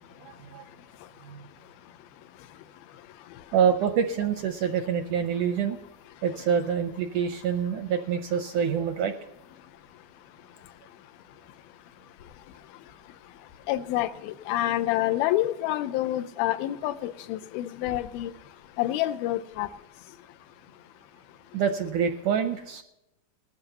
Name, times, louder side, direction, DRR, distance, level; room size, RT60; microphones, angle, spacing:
voice 1, 3.5-5.8 6.2-9.1 21.5-22.8, right 7 dB, 80° right, 7 dB, 1.8 m, -26 dB
voice 2, 13.7-18.3 18.8-19.7, left 14 dB, 85° left, 10 dB, 2.4 m, -27 dB
19.0 x 14.0 x 2.9 m, 0.88 s
omnidirectional pair, 4.3 m